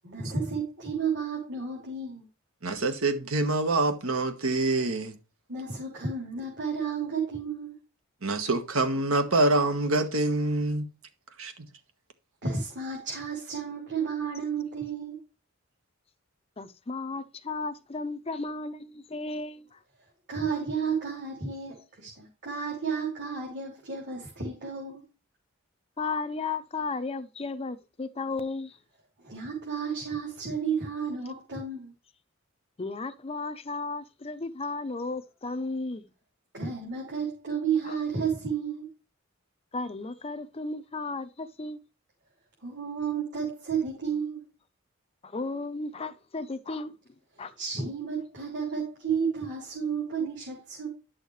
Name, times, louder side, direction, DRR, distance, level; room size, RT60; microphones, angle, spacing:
voice 1, 0.0-2.2 5.5-7.7 12.4-15.2 20.3-25.0 29.2-31.9 36.5-38.9 42.6-44.4 47.6-50.9, right 6 dB, 60° right, 3.2 m, -32 dB
voice 2, 2.6-5.2 8.2-10.9 11.4-11.5, right 2 dB, 75° right, 1.4 m, -26 dB
voice 3, 16.6-19.8 26.0-28.8 32.8-36.1 37.8-38.0 39.7-41.8 45.2-46.9 47.4-47.5, left 3 dB, 30° left, 0.6 m, -34 dB
10.5 x 6.4 x 3.2 m
head